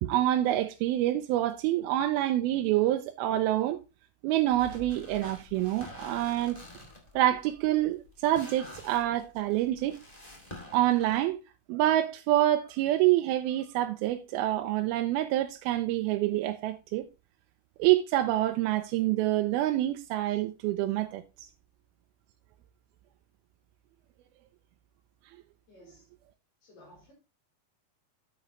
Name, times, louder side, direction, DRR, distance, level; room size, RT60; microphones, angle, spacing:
voice 1, 0.0-3.8 4.2-6.6 7.2-10.0 10.7-11.4 11.7-17.1 17.8-21.2, right 14 dB, 85° right, 2.5 m, -27 dB
sound 1, 4.5-11.3, left 2 dB, 15° left, 1.3 m, -47 dB
voice 2, 25.7-26.1 26.6-27.1, left 1 dB, 60° left, 5.5 m, -55 dB
9.1 x 8.8 x 3.0 m
omnidirectional pair, 4.3 m